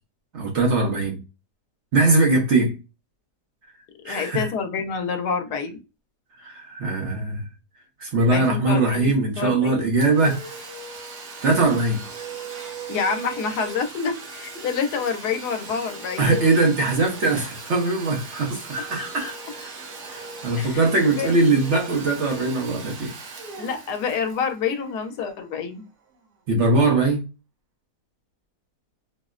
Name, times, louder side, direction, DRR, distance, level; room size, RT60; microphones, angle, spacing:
voice 1, 0.3-1.2 1.9-2.7 4.1-4.5 6.4-7.4 8.0-10.5 11.4-12.0 16.2-19.7 20.0-23.1 26.5-27.3, right 3 dB, 55° right, 1.0 m, -21 dB
voice 2, 4.0-5.8 8.3-9.8 12.9-16.4 20.6-20.8 21.2-21.3 23.6-25.8, left 6 dB, 90° left, 1.2 m, -27 dB
Domestic sounds home sounds, 10.0-25.5, right 4 dB, 80° right, 1.4 m, -39 dB
4.3 x 2.0 x 2.4 m
omnidirectional pair, 1.7 m